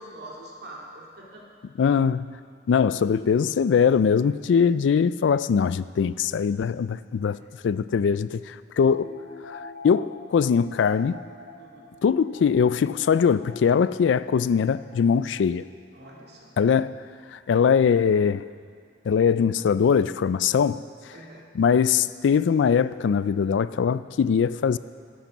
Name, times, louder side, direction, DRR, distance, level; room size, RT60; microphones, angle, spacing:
voice 1, 0.0-1.5 7.2-7.5 11.6-11.9 15.9-16.5 21.1-21.5, right 1 dB, 65° right, 2.3 m, -44 dB
voice 2, 1.8-2.3 2.7-7.4 7.6-9.1 9.5-11.2 12.0-15.7 16.6-17.0 17.3-18.5 19.1-20.8 21.5-24.8, left 6 dB, 85° left, 0.3 m, -22 dB
sound 1, 8.9-16.8, left 3 dB, 60° left, 1.4 m, -47 dB
12.0 x 9.2 x 6.1 m
head